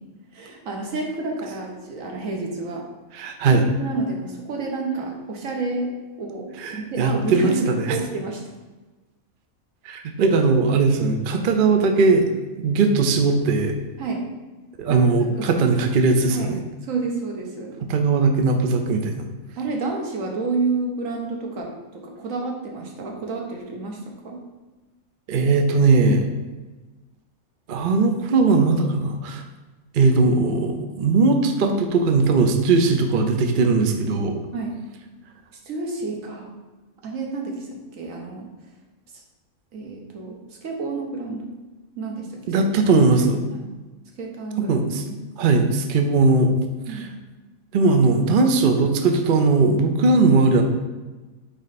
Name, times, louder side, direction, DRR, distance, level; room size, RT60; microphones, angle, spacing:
voice 1, 0.3-2.8 3.1-5.9 6.2-8.4 14.0-14.3 14.9-15.0 15.4-15.6 16.3-16.5 16.8-17.8 19.6-24.0 24.2-24.4 34.5-34.8 35.6-36.5 37.0-38.5 39.1-39.2 39.7-41.6 42.0-42.5 43.5-43.6 44.2-44.7 45.0-45.2 46.9-47.1, right 3 dB, 65° right, 1 dB, 1.4 m, -29 dB
voice 2, 3.1-3.6 6.6-7.8 9.8-12.3 12.6-13.8 14.8-16.6 17.8-19.3 25.3-26.3 27.7-29.4 29.9-34.5 42.5-43.4 44.6-45.1 45.4-46.5 46.9-47.1 47.7-50.6, right 3 dB, 50° right, 5 dB, 0.6 m, -19 dB
8.8 x 3.2 x 4.1 m, 1.2 s
omnidirectional pair, 1.5 m